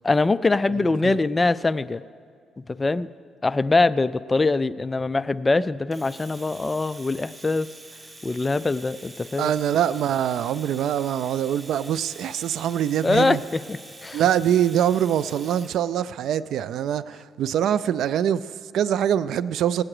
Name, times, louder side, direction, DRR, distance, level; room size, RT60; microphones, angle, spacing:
voice 1, 0.0-2.0 2.6-3.1 3.4-7.7 8.2-9.5 13.0-14.2, left 3 dB, 25° left, 16 dB, 0.3 m, -23 dB
Domestic sounds home sounds, 5.9-15.8, right 2 dB, 20° right, 1.2 m, -45 dB
voice 2, 9.4-13.4 14.1-19.8, right 10 dB, 75° right, 17 dB, 0.3 m, -24 dB
18.5 x 8.7 x 4.9 m, 2.2 s
cardioid pair, 90°, 0 cm